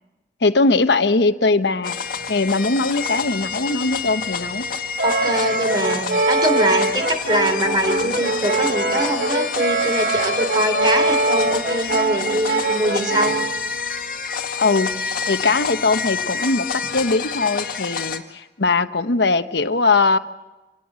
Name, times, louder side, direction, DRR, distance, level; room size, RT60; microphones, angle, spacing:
voice 1, 0.4-2.0 2.3-4.7 14.6-20.2, left 3 dB, 70° left, 10 dB, 1.0 m, -20 dB
sound 1, 1.8-18.2, left 5 dB, 50° left, 2.0 m, -28 dB
voice 2, 5.0-13.3, equal, 25° right, 6 dB, 3.5 m, -23 dB
Brass instrument, 5.0-13.6, right 3 dB, 60° right, 1.3 m, -23 dB
27.5 x 19.0 x 7.5 m, 1.1 s
head